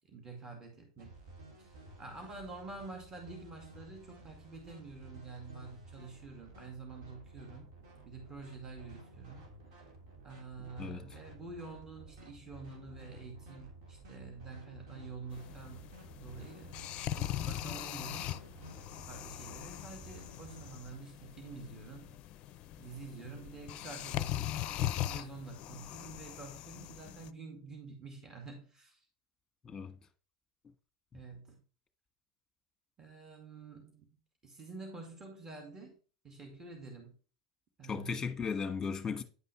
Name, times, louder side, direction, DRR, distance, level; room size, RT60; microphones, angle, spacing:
voice 1, 0.1-1.2 1.6-7.7 8.0-9.5 10.2-15.9 16.2-16.8 17.1-18.3 19.1-22.2 22.8-29.0 31.1-31.6 33.0-34.2 34.4-36.0 36.2-37.2 37.8-38.3, right 3 dB, 20° right, 2.2 m, -48 dB
sound 1, 1.0-20.8, right 2 dB, 65° right, 2.8 m, -53 dB
sound 2, 15.3-27.3, left 12 dB, 45° left, 0.5 m, -40 dB
voice 2, 29.6-29.9 31.1-31.2 37.9-39.2, left 6 dB, 15° left, 1.4 m, -36 dB
9.7 x 5.4 x 3.3 m
hypercardioid pair, 95°, 3 cm